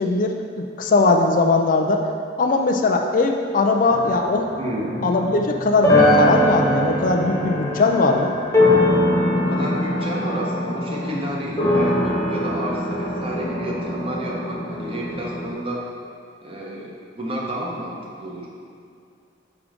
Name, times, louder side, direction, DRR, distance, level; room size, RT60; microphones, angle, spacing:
voice 1, 0.0-2.0 2.4-4.5 5.0-8.3, left 3 dB, 45° left, 3 dB, 0.4 m, -20 dB
sound 1, 3.9-15.5, left 1 dB, 15° left, 1.1 m, -22 dB
voice 2, 4.6-5.0 9.3-15.8 16.4-18.5, right 1 dB, 30° right, -3 dB, 0.9 m, -30 dB
6.0 x 3.7 x 5.0 m, 2.3 s
head